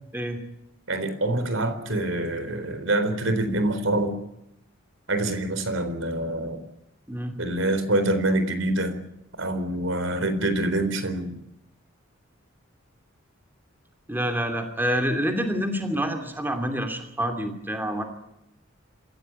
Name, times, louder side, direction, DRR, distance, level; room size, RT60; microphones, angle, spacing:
voice 1, 0.9-4.1 5.1-6.6 7.4-9.0 9.4-11.3, right 1 dB, 70° right, 10 dB, 4.1 m, -25 dB
voice 2, 14.1-18.0, equal, 10° right, 6 dB, 2.7 m, -27 dB
27.0 x 15.0 x 9.9 m, 0.81 s
head